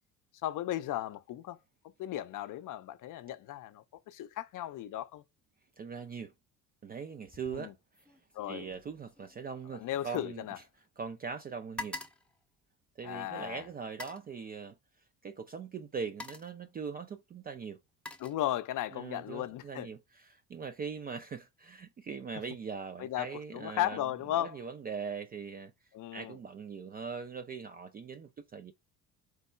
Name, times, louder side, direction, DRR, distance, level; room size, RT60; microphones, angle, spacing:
voice 1, 0.4-1.6 2.0-5.2 7.5-7.7 8.3-8.7 9.7-10.6 13.0-13.6 18.2-19.9 23.0-24.6 25.9-26.4, left 13 dB, 45° left, 0.6 m, -36 dB
voice 2, 5.8-6.3 6.8-7.7 8.5-10.4 11.0-12.0 13.0-14.8 15.2-17.8 18.9-24.0 24.4-25.7 26.1-28.7, right 5 dB, 20° right, 0.3 m, -41 dB
sound 1, 7.3-7.7 7.9-11.1 11.3-13.2 13.8-14.3 15.4-15.5 15.9-16.6 17.5-18.9 19.3-19.6, left 2 dB, ahead, 0.8 m, -47 dB
4.6 x 2.2 x 4.3 m
hypercardioid pair, 65°, 46 cm